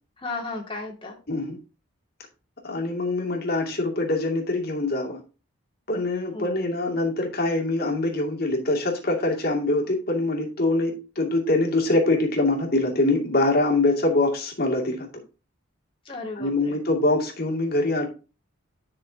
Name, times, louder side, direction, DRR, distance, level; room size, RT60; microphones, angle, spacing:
voice 1, 0.2-1.2 6.3-6.7 16.1-16.7, left 3 dB, 25° left, 0 dB, 2.3 m, -34 dB
voice 2, 1.3-1.6 2.6-5.2 5.9-15.1 16.3-18.1, left 2 dB, 45° left, -1 dB, 2.5 m, -24 dB
11.0 x 6.2 x 2.9 m, 0.32 s
head